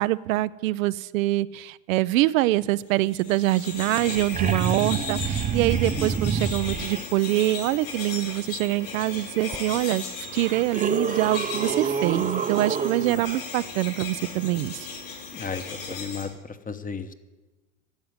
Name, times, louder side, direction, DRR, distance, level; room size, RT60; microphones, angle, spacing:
voice 1, 0.0-10.0 10.3-14.9, right 16 dB, 75° right, 15 dB, 0.5 m, -24 dB
sound 1, 3.0-16.2, left 4 dB, 80° left, 6.1 m, -37 dB
sound 2, 3.6-3.7 3.9-7.0 9.5-9.6 10.3-13.4 15.9-16.0, right 6 dB, 20° right, 0.6 m, -28 dB
voice 2, 15.3-17.1, left 5 dB, 20° left, 10 dB, 1.0 m, -34 dB
12.5 x 7.6 x 9.5 m, 1.2 s
hypercardioid pair, 85°, 41 cm